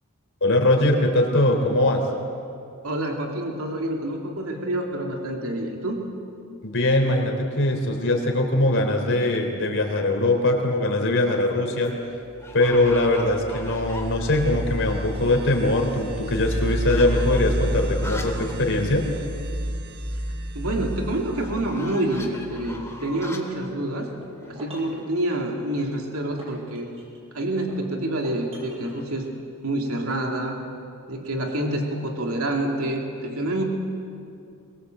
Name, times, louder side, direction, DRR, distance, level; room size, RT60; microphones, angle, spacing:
voice 1, 0.4-2.0 6.6-11.9 12.5-19.0, left 1 dB, 60° left, 3 dB, 3.8 m, -21 dB
voice 2, 2.8-6.0 20.5-24.1 24.5-26.9 27.3-29.3 29.6-30.6 31.1-33.6, right 1 dB, 75° right, 1 dB, 2.9 m, -27 dB
sound 1, 10.1-10.6 11.1-11.6 11.8-11.9 12.4-14.6 14.9-15.0 15.2-18.6 18.9-19.0 19.3-19.4 21.3-25.1, left 2 dB, 15° left, 2.4 m, -41 dB
sound 2, 12.5-23.1, equal, 45° right, 1.4 m, -30 dB
sound 3, 24.0-25.0 25.7-27.2 27.7-29.1, right 1 dB, 25° right, 7.2 m, -44 dB
23.5 x 21.0 x 7.9 m, 2.6 s
head